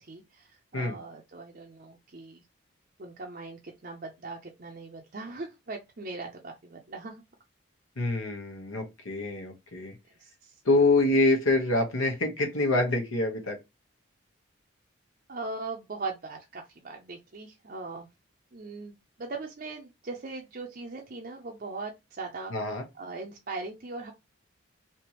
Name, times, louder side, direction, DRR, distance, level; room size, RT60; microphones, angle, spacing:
voice 1, 0.0-2.4 3.0-7.2 8.0-8.1 10.2-10.6 15.3-18.1 18.5-24.1, right 3 dB, 45° right, 0.5 m, -40 dB
voice 2, 8.0-9.9 10.6-13.6 22.5-22.8, left 2 dB, 85° left, 1.1 m, -26 dB
3.4 x 2.9 x 2.9 m
head